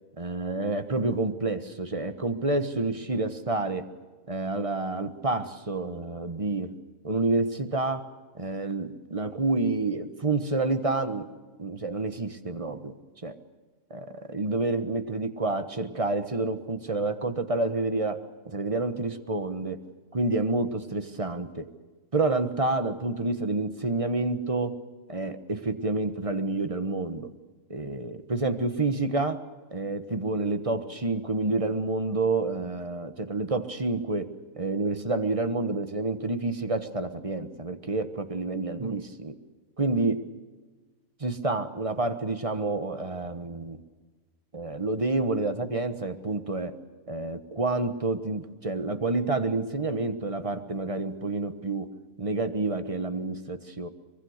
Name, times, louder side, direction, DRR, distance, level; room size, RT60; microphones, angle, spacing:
voice 1, 0.2-3.9 4.3-6.7 7.0-8.1 8.3-11.3 11.6-12.9 13.2-13.4 13.9-19.8 20.1-21.7 22.1-24.8 25.1-27.3 27.7-29.4 29.7-34.3 34.5-39.3 39.8-40.3 41.2-43.8 44.5-46.8 47.1-51.9 52.2-53.9, right 3 dB, 25° right, 9 dB, 1.3 m, -29 dB
23.5 x 22.5 x 6.6 m, 1.3 s
omnidirectional pair, 1.4 m